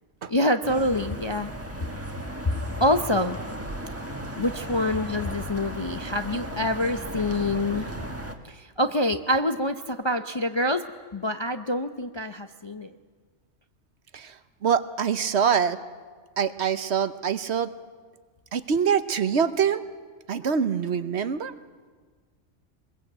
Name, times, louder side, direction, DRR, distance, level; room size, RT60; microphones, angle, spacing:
voice 1, 0.3-1.5 2.8-3.4 4.4-7.9 8.5-10.8 11.1-12.9, left 1 dB, 30° left, 7 dB, 0.5 m, -26 dB
sound 1, 0.6-8.3, right 1 dB, 10° right, 1.5 m, -36 dB
voice 2, 14.6-15.8 16.4-17.7 18.5-19.8 20.3-21.5, right 7 dB, 60° right, 12 dB, 1.1 m, -24 dB
22.5 x 21.5 x 8.1 m, 1.5 s
omnidirectional pair, 1.4 m